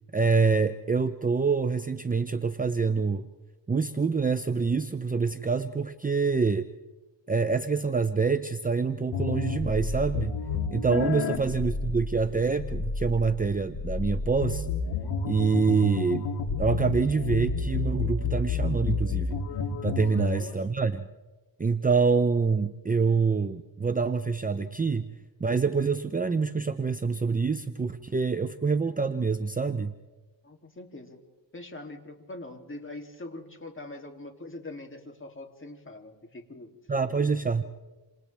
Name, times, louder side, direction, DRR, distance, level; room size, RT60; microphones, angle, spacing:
voice 1, 0.1-3.3 3.7-6.7 7.3-10.4 10.7-14.7 15.3-16.3 16.6-19.4 19.8-21.0 21.6-25.1 25.4-29.9 36.9-37.6, right 5 dB, 20° right, 9 dB, 0.7 m, -26 dB
sound 1, 9.1-20.4, left 4 dB, 70° left, 3.4 m, -30 dB
voice 2, 20.1-20.6 30.4-31.2 31.5-36.8, left 2 dB, 25° left, 3 dB, 3.0 m, -43 dB
29.0 x 27.5 x 3.5 m, 1.2 s
cardioid pair, 110°, 46 cm